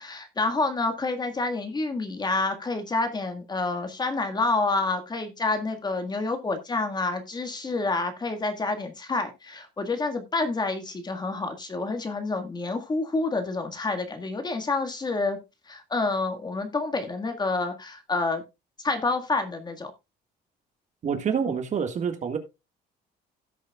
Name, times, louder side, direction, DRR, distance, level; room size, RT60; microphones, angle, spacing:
voice 1, 0.0-15.4 15.7-18.4 18.8-19.9, left 3 dB, 25° left, 1.7 m, -28 dB
voice 2, 21.0-22.4, right 7 dB, 45° right, 1.8 m, -27 dB
16.5 x 6.4 x 2.3 m
cardioid pair, 110°, 17 cm